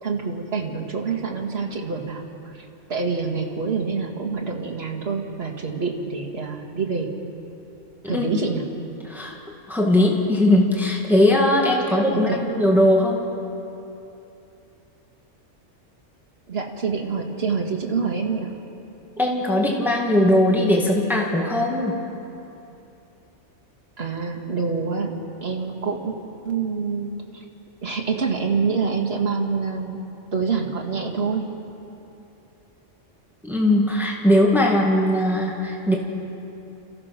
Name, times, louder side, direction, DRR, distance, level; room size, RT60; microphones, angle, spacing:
voice 1, 0.0-7.1 8.1-8.6 11.8-12.4 16.5-18.5 24.0-25.1 25.4-26.2 26.4-27.4 27.8-30.0 30.3-31.4, right 5 dB, 55° right, 1 dB, 2.3 m, -26 dB
voice 2, 9.7-13.2 19.2-22.0 33.4-36.0, left 1 dB, ahead, -1 dB, 2.0 m, -19 dB
30.0 x 15.0 x 6.0 m, 2.9 s
omnidirectional pair, 1.3 m